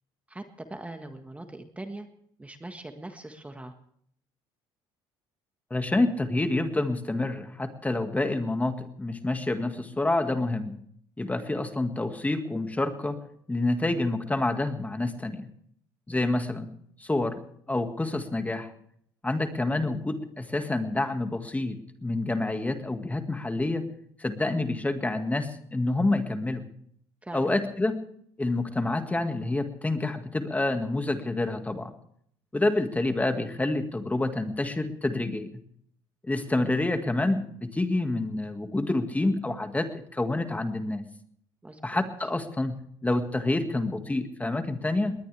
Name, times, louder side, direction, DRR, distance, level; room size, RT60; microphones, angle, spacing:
voice 1, 0.3-2.1 2.4-3.7 16.1-16.3 27.2-27.5 41.6-42.0, right 2 dB, 10° right, 6 dB, 1.6 m, -41 dB
voice 2, 5.7-10.8 11.2-13.2 13.5-15.5 16.1-16.7 17.0-17.4 17.7-18.7 19.2-23.8 24.2-26.6 27.3-28.0 28.4-31.9 32.5-35.5 36.2-41.0 41.8-45.1, left 2 dB, 15° left, 7 dB, 1.9 m, -28 dB
20.0 x 20.0 x 3.4 m, 0.66 s
supercardioid pair, 85°, 11 cm